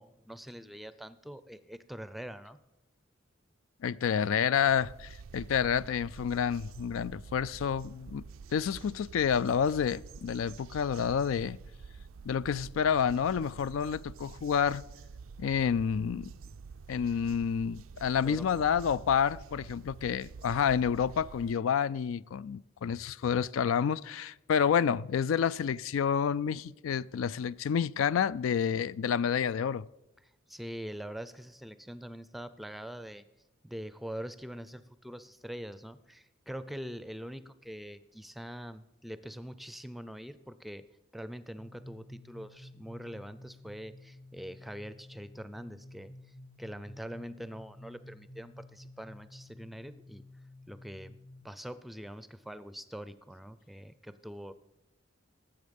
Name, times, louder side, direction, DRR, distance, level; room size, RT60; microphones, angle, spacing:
voice 1, 0.0-2.6 18.2-18.5 30.5-33.2 33.6-40.8 41.1-46.1 46.6-50.2 50.7-51.1 51.4-54.5, equal, ahead, 0.4 m, -43 dB
voice 2, 3.8-8.2 8.5-11.6 12.2-14.8 15.4-16.3 16.9-29.9, left 7 dB, 80° left, 0.3 m, -29 dB
sound 1, 4.7-21.5, right 5 dB, 80° right, 0.4 m, -48 dB
sound 2, 41.6-51.4, left 1 dB, 50° left, 1.7 m, -52 dB
18.5 x 7.7 x 5.3 m
head